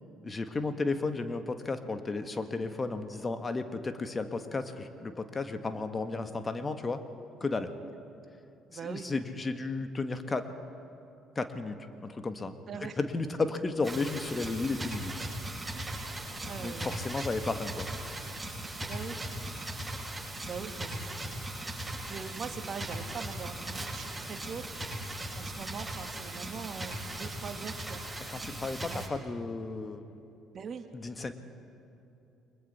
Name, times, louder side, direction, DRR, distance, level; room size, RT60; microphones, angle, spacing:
voice 1, 0.2-7.0 7.4-7.7 8.7-10.5 11.3-11.7 12.0-12.6 13.0-15.1 16.6-17.9 28.3-30.0 30.9-31.3, left 3 dB, 30° left, 8 dB, 1.7 m, -33 dB
voice 2, 8.7-9.1 12.7-13.0 15.7-16.1 16.4-17.3 18.8-19.2 20.4-21.3 22.1-24.6 25.3-28.0 28.8-29.0 30.5-30.9, right 6 dB, 45° right, 6 dB, 1.8 m, -42 dB
sound 1, 13.8-29.1, right 1 dB, 10° right, 7.2 m, -38 dB
29.5 x 23.0 x 4.4 m, 2.9 s
figure-of-eight pair, 50°, 0 cm